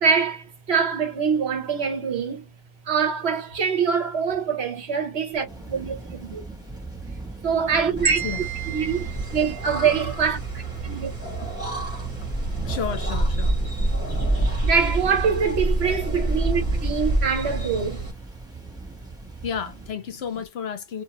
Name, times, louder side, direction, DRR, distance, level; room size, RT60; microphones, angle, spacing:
voice 1, 0.0-2.5 2.9-6.4 7.4-8.2 8.7-9.0 9.3-11.5 13.7-13.8 14.6-18.1, right 6 dB, 65° right, 1.2 m, -24 dB
Thunder / Rain, 5.5-19.9, right 3 dB, 5° right, 1.0 m, -39 dB
sound 1, 8.0-18.1, right 2 dB, 10° left, 1.3 m, -27 dB
sound 2, 8.1-10.2, right 7 dB, 85° right, 1.1 m, -33 dB
voice 2, 12.6-13.5 19.4-21.0, left 7 dB, 65° left, 0.8 m, -31 dB
2.7 x 2.5 x 2.9 m
omnidirectional pair, 1.2 m